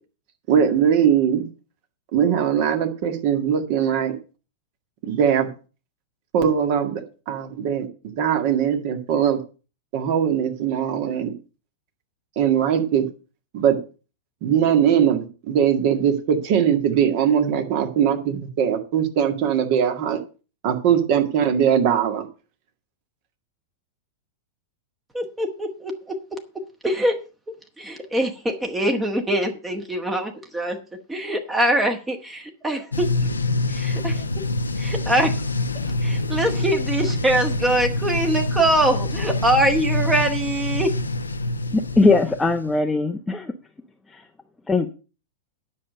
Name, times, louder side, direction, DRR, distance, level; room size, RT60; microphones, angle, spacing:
voice 1, 0.5-1.4 2.1-4.2 5.0-5.5 6.3-7.9 8.2-9.4 9.9-11.3 12.4-13.0 13.5-13.8 14.4-20.2 20.6-22.3, right 8 dB, 45° right, 5 dB, 1.9 m, -20 dB
voice 2, 25.1-26.4 26.8-27.2 27.5-30.8 31.1-33.3 33.7-34.3 34.8-35.4 36.0-40.9, right 1 dB, 10° right, 4 dB, 1.3 m, -23 dB
sound 1, 32.9-42.8, left 2 dB, 75° left, 0.7 m, -26 dB
voice 3, 41.7-43.5 44.1-44.3 44.7-44.9, left 3 dB, 10° left, 4 dB, 0.8 m, -20 dB
9.9 x 6.5 x 6.5 m, 0.35 s
figure-of-eight pair, 95°, 0 cm